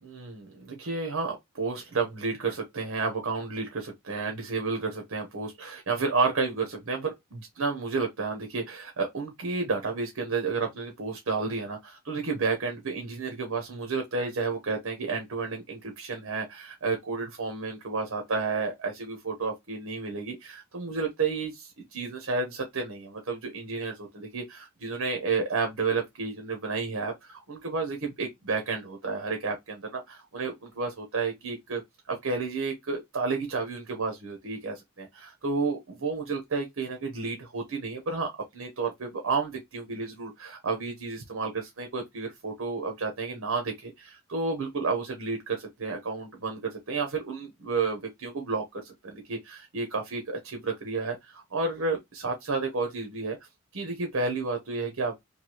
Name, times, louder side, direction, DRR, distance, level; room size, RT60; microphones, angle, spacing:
voice 1, 0.0-31.8 32.1-53.4 53.7-55.1, right 4 dB, 80° right, 0.8 m, -31 dB
3.2 x 2.3 x 2.8 m
head